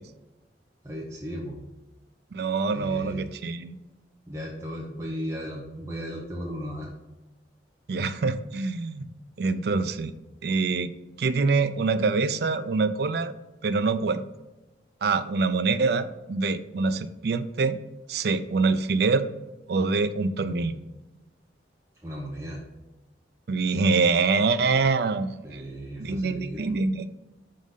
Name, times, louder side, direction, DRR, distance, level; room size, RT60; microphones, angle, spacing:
voice 1, 0.8-1.6 2.7-3.3 4.3-6.9 22.0-22.6 25.4-26.6, equal, 15° right, -5 dB, 0.8 m, -35 dB
voice 2, 2.3-3.8 7.9-9.1 9.4-10.1 10.4-10.9 11.2-13.3 13.6-14.2 15.0-17.8 18.1-19.3 19.7-20.8 23.5-25.6 26.0-27.1, right 4 dB, 60° right, 12 dB, 0.4 m, -25 dB
6.2 x 3.8 x 5.4 m, 1.0 s
head